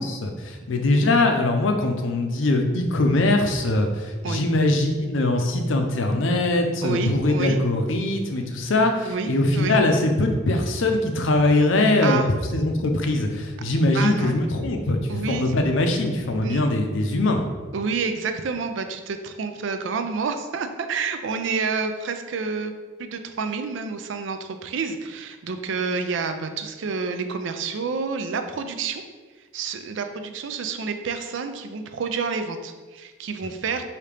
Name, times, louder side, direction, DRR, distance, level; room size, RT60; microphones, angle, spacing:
voice 1, 0.0-12.2 12.5-17.5, left 2 dB, 75° left, 4 dB, 0.5 m, -22 dB
voice 2, 6.8-7.6 9.0-9.8 12.0-12.3 13.9-14.3 15.1-15.5 16.4-16.6 17.7-22.7 23.0-29.0 29.5-33.9, right 5 dB, 70° right, 7 dB, 0.4 m, -29 dB
5.0 x 2.8 x 3.3 m, 1.4 s
head